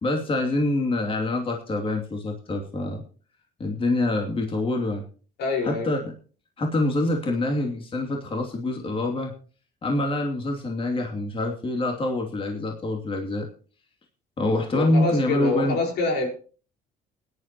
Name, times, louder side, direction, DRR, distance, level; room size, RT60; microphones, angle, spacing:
voice 1, 0.0-3.0 3.6-5.0 5.6-6.1 6.6-9.3 9.8-13.5 14.4-15.8, left 2 dB, 30° left, 2.7 m, -25 dB
voice 2, 5.4-5.9 14.7-16.3, left 3 dB, 75° left, 4.9 m, -25 dB
20.5 x 10.5 x 3.0 m
cardioid pair, 110°, 17 cm